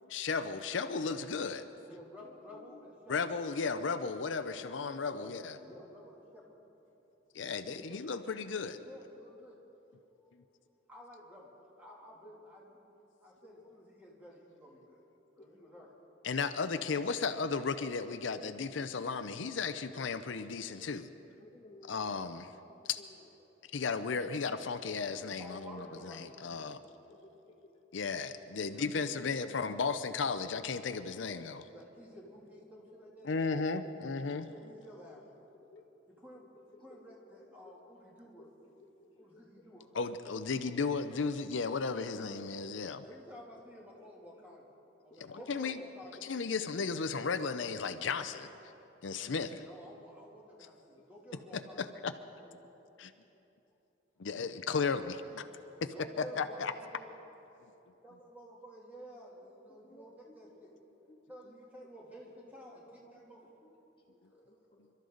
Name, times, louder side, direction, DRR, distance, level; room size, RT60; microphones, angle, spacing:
voice 1, 0.1-1.7 3.1-5.6 7.3-8.8 16.2-21.1 21.9-22.5 22.9-23.0 23.7-26.8 27.9-31.7 33.2-34.5 39.9-43.0 45.2-45.8 46.2-48.5 49.0-49.6 51.8-52.1 53.0-53.1 54.2-55.4 55.8-55.9 56.4-56.7, left 5 dB, 75° left, 10 dB, 0.6 m, -35 dB
voice 2, 1.9-3.3 5.1-6.6 7.4-8.0 8.8-9.6 10.2-10.3 10.9-12.8 13.2-15.0 15.3-15.9 25.4-26.8 28.6-30.0 31.7-33.7 34.5-35.2 36.1-36.5 36.8-38.5 39.2-39.9 43.0-44.7 45.0-46.3 49.6-52.0 54.8-55.1 55.9-57.1 58.0-60.7 61.3-63.5, equal, 10° right, -4 dB, 2.8 m, -52 dB
voice 3, 2.5-2.8 5.6-5.7 8.7-8.9 13.5-13.7 15.4-15.8 19.9-20.0 20.7-20.9 21.4-22.3 23.0-23.2 26.7-27.5 27.9-28.0 33.2-33.4 35.5-35.8 36.3-36.6 36.9-37.2 37.6-37.7 38.4-38.5 38.8-39.6 40.3-40.4 44.0-44.4 45.1-45.3 46.2-46.3 48.3-48.4 48.7-49.3 59.7-60.6 61.1-61.2 61.4-61.5 62.5-63.3 63.6-63.7 64.1-64.8, left 2 dB, 30° left, 0 dB, 1.4 m, -59 dB
27.5 x 13.0 x 3.9 m, 3.0 s
head